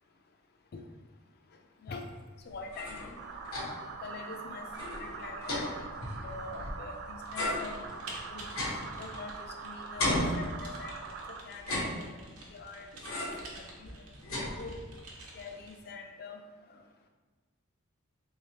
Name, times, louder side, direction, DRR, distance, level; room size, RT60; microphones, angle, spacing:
sound 1, 2.5-4.0 4.3-4.4 4.7-6.9 7.3-9.6 10.0-11.1 11.5-12.5 13.0-13.5 13.9-15.0, left 1 dB, 70° left, 0.9 m, -35 dB
voice 1, 2.5-3.0 4.0-4.7 5.0-5.9 6.2-8.0 8.3-8.5 9.0-11.0 11.4-12.9 13.2-13.3 13.5-14.0 14.6-14.8 15.3-16.4 16.7-16.8, left 4 dB, 45° left, 3 dB, 0.4 m, -45 dB
sound 2, 3.2-11.4, right 5 dB, 55° right, 0.3 m, -43 dB
Typing, 7.2-15.8, right 2 dB, 85° right, 0.8 m, -50 dB
3.4 x 3.2 x 2.8 m, 1.3 s
head